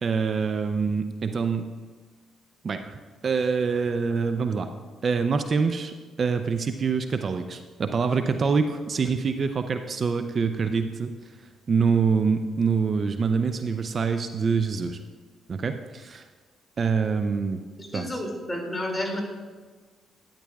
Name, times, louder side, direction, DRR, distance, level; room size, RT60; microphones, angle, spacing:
voice 1, 0.0-1.7 2.6-4.7 5.0-11.1 11.7-15.0 15.5-16.3 16.8-17.6 17.9-18.1, right 5 dB, 50° right, 8 dB, 0.5 m, -25 dB
voice 2, 17.8-19.2, left 1 dB, 15° left, 1 dB, 2.5 m, -31 dB
12.5 x 10.5 x 2.3 m, 1.4 s
supercardioid pair, 60°, 0 cm